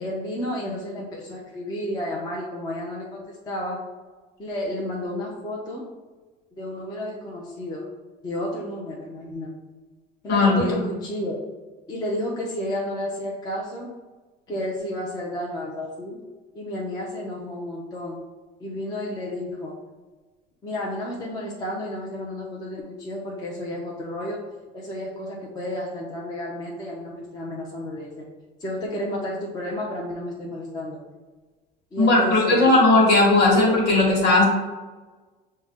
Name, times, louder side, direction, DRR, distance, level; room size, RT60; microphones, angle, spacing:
voice 1, 0.0-3.8 4.4-5.8 6.6-7.9 8.2-9.5 10.2-11.4 11.9-13.9 14.5-16.2 16.5-18.2 18.6-19.8 20.6-24.4 24.7-28.3 28.6-31.0 31.9-32.7 33.3-33.7, left 1 dB, 20° left, -3 dB, 0.5 m, -31 dB
voice 2, 10.3-10.8 32.0-34.4, left 2 dB, 55° left, -2 dB, 1.4 m, -17 dB
6.0 x 2.1 x 3.4 m, 1.3 s
cardioid pair, 165°, 20 cm